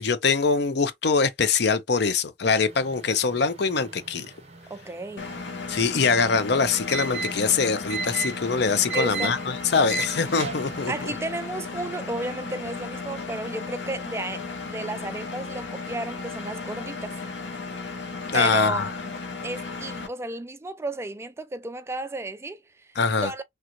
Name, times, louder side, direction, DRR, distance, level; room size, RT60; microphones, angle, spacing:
voice 1, 0.0-4.3 5.7-9.4 9.7-10.9 18.3-18.9 23.0-23.3, left 5 dB, 65° left, 0.6 m, -23 dB
sound 1, 2.5-11.0, right 4 dB, 35° right, 0.9 m, -37 dB
voice 2, 4.7-5.3 8.9-9.4 10.9-17.2 18.3-18.9 19.4-22.9 23.2-23.4, right 2 dB, 15° right, 0.3 m, -33 dB
Engine, 5.2-20.1, left 4 dB, 80° left, 1.0 m, -35 dB
3.4 x 2.5 x 2.8 m
head